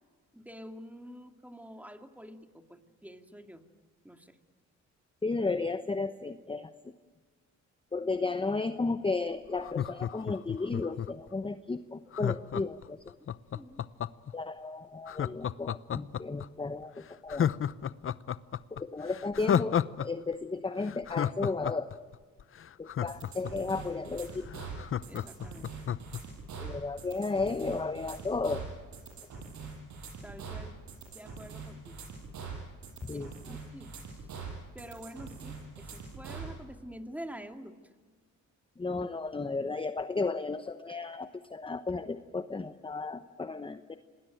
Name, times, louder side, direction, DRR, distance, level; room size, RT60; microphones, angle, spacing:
voice 1, 0.3-3.6 4.0-4.4 8.0-8.1 13.5-13.8 25.1-25.7 30.2-30.8 31.1-32.0 33.1-34.3 34.7-37.7, equal, 5° right, 6 dB, 2.4 m, -47 dB
voice 2, 5.2-6.7 7.9-13.0 14.3-17.5 18.7-21.9 22.8-24.5 26.6-28.6 33.0-33.3 38.8-44.0, left 3 dB, 15° left, 10 dB, 1.0 m, -34 dB
Laughter, 9.6-11.3 12.1-14.3 15.1-16.5 16.8-16.9 17.3-20.1 20.3-20.4 20.8-23.7 24.1-24.2 24.5-26.2 26.6-26.7, left 9 dB, 45° left, 0.8 m, -31 dB
sound 1, 23.1-36.5, right 5 dB, 70° right, 7.6 m, -43 dB
27.5 x 20.0 x 9.1 m, 1.5 s
cardioid pair, 90°, 30 cm